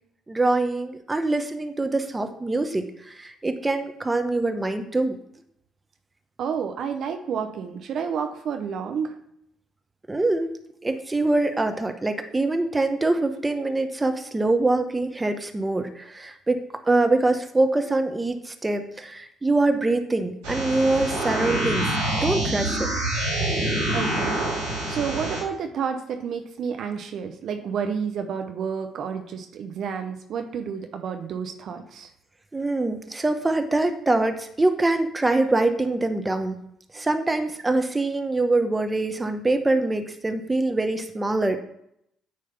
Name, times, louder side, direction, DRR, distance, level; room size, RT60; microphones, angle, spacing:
voice 1, 0.3-2.9 3.2-5.2 10.1-10.5 10.8-22.9 32.5-36.6 36.9-41.6, right 2 dB, 20° right, 7 dB, 1.0 m, -24 dB
voice 2, 6.4-9.1 23.9-24.5 24.9-32.1, right 6 dB, 60° right, 6 dB, 0.7 m, -30 dB
sound 1, 20.4-25.4, right 1 dB, 90° right, 3.3 m, -26 dB
9.3 x 3.3 x 5.5 m, 0.73 s
hypercardioid pair, 50°, 0 cm